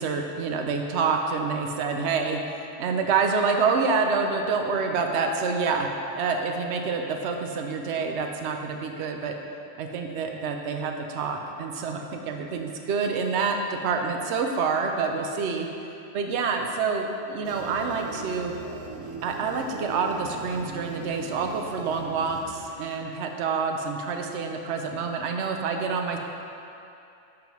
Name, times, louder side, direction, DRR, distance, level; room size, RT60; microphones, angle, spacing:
voice 1, 0.0-5.9 6.2-9.4 9.8-15.7 16.1-18.5 19.2-26.2, right 5 dB, 65° right, 3 dB, 0.8 m, -27 dB
sound 1, 17.4-23.0, right 3 dB, 85° right, 1.1 m, -40 dB
9.8 x 5.3 x 3.1 m, 2.8 s
omnidirectional pair, 1.4 m